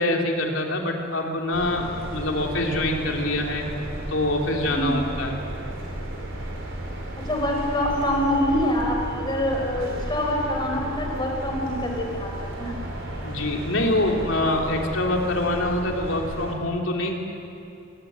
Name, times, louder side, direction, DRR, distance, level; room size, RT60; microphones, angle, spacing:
voice 1, 0.0-3.7 4.1-5.4 13.2-17.2, left 1 dB, 75° left, 1 dB, 3.1 m, -25 dB
sound 1, 1.5-16.5, right 1 dB, 70° right, 4.8 m, -34 dB
voice 2, 7.2-12.7, left 1 dB, 25° left, 1 dB, 4.1 m, -25 dB
21.0 x 18.0 x 9.5 m, 2.7 s
head